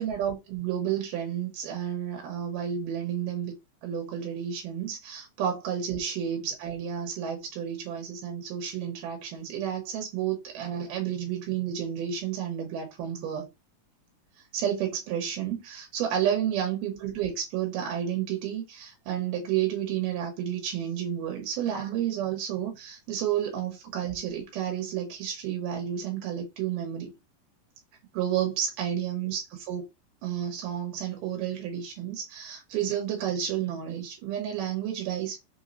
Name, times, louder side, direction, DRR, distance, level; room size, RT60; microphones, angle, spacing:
voice 1, 0.0-3.5 3.8-13.5 14.5-27.1 28.1-29.8 30.2-35.4, right 9 dB, 85° right, 2.5 m, -31 dB
5.4 x 2.0 x 2.6 m
omnidirectional pair, 3.7 m